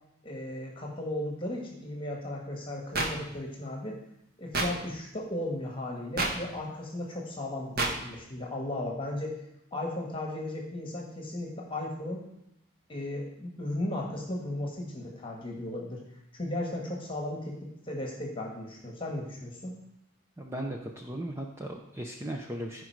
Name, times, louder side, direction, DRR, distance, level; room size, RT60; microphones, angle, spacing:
voice 1, 0.2-4.0 4.4-9.4 9.7-12.2 12.9-16.0 16.3-19.7, left 1 dB, 25° left, -1 dB, 1.6 m, -35 dB
sound 1, 2.9-3.1 4.5-4.7 6.2-6.3 7.8-7.9, right 2 dB, 45° right, 1.4 m, -27 dB
voice 2, 20.4-22.8, right 1 dB, 10° right, 1 dB, 0.6 m, -37 dB
14.5 x 5.1 x 4.7 m, 0.80 s
head